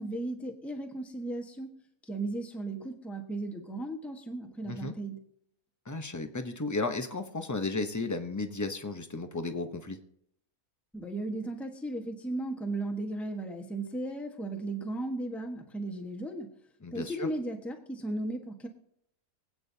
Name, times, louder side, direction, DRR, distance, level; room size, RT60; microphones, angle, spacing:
voice 1, 0.0-1.7 2.0-5.2 10.9-16.5 16.9-18.7, right 2 dB, ahead, 2 dB, 1.1 m, -36 dB
voice 2, 4.6-4.9 5.9-10.0 16.8-17.3, left 3 dB, 20° left, 7 dB, 0.5 m, -34 dB
24.5 x 8.7 x 2.8 m, 0.72 s
omnidirectional pair, 1.5 m